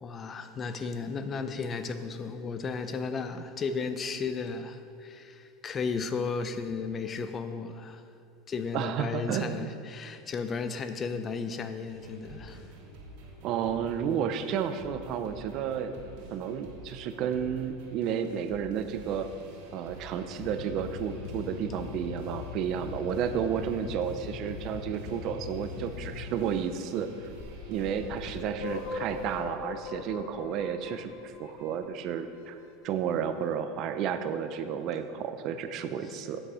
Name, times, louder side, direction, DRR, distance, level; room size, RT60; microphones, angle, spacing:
voice 1, 0.0-8.0 8.5-12.7 13.1-13.3, left 4 dB, 25° left, 0.5 m, -34 dB
voice 2, 8.7-9.7 13.4-15.9 16.3-19.3 19.7-27.1 27.7-32.6 32.8-36.4, right 8 dB, 45° right, 0.6 m, -32 dB
sound 1, 11.9-29.4, right 2 dB, 70° right, 1.9 m, -48 dB
sound 2, 20.4-26.4, left 8 dB, 70° left, 0.5 m, -41 dB
sound 3, 27.4-32.3, left 5 dB, 55° left, 0.9 m, -40 dB
8.6 x 7.7 x 4.9 m
supercardioid pair, 140°, 0 cm